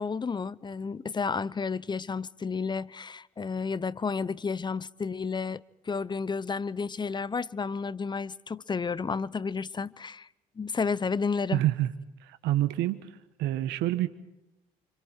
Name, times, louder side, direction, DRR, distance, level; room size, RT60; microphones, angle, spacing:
voice 1, 0.0-10.3 10.6-11.6, left 5 dB, 25° left, 0.8 m, -31 dB
voice 2, 11.5-11.9 12.2-13.0 13.4-14.1, right 14 dB, 75° right, 1.3 m, -27 dB
30.0 x 26.0 x 4.5 m
supercardioid pair, 70°, 18 cm